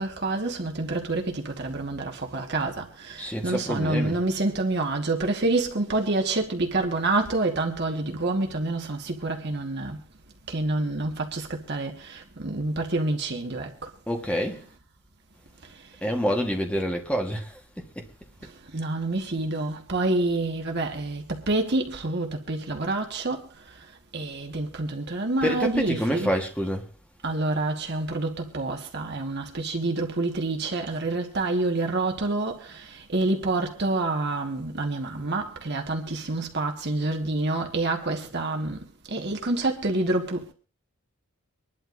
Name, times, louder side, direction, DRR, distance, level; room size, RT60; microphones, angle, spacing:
voice 1, 0.0-10.0 10.5-13.9 15.7-15.9 18.4-23.8 24.1-26.3 27.2-38.8 39.1-40.5, right 2 dB, 50° right, 1.5 m, -28 dB
voice 2, 3.2-4.2 14.1-14.6 16.0-18.0 25.4-26.8, equal, 5° left, 1.3 m, -27 dB
25.0 x 11.5 x 2.6 m
head